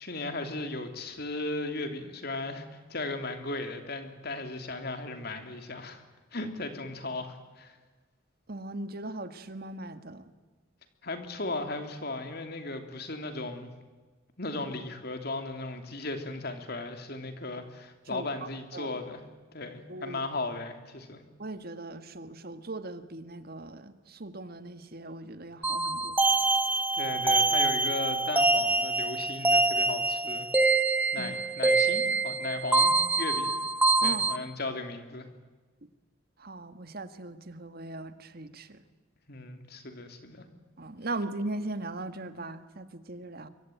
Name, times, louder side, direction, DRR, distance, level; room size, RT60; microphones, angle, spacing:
voice 1, 0.0-6.0 6.3-7.8 11.0-13.7 14.4-19.2 19.5-21.2 27.0-30.5 31.1-33.5 34.0-35.3 39.3-40.5, left 2 dB, 50° left, 7 dB, 3.2 m, -36 dB
voice 2, 8.5-10.3 18.1-18.3 18.7-18.9 19.9-20.2 21.4-26.2 31.2-31.3 34.0-34.3 36.4-38.8 40.8-43.5, right 2 dB, 50° right, 10 dB, 1.7 m, -39 dB
sound 1, 25.6-34.4, right 3 dB, 10° right, 1.2 m, -25 dB
26.0 x 24.0 x 9.4 m, 1.3 s
head